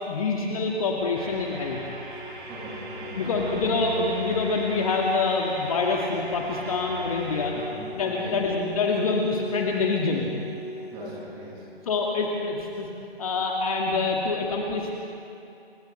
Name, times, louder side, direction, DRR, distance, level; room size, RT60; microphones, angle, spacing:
voice 1, 0.1-1.8 3.2-7.5 7.9-10.3 11.9-12.9 13.2-15.0, left 3 dB, 35° left, -1 dB, 2.1 m, -26 dB
sound 1, 1.1-7.5, right 1 dB, 50° right, 4.9 m, -39 dB
sound 2, 2.1-11.2, left 4 dB, 80° left, 3.4 m, -39 dB
voice 2, 2.5-3.5 7.5-7.8 8.2-8.4 10.9-11.7, right 2 dB, 15° right, -6 dB, 6.7 m, -40 dB
29.0 x 28.5 x 3.4 m, 2.7 s
figure-of-eight pair, 145°, 31 cm